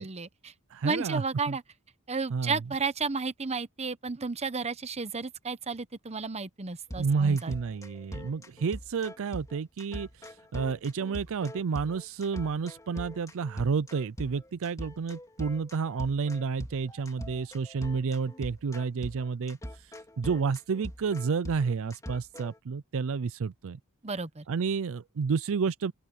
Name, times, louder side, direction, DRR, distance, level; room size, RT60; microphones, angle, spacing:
voice 1, 0.0-0.5 0.8-1.6 2.1-7.5 24.0-24.4, right 4 dB, 30° right, 0.9 m, -33 dB
voice 2, 0.7-1.2 1.5-1.6 2.3-2.6 6.9-19.6 20.2-23.8 24.5-25.9, right 5 dB, 65° right, 0.4 m, -30 dB
sound 1, 6.9-22.6, equal, 15° left, 3.0 m, -42 dB
open air
head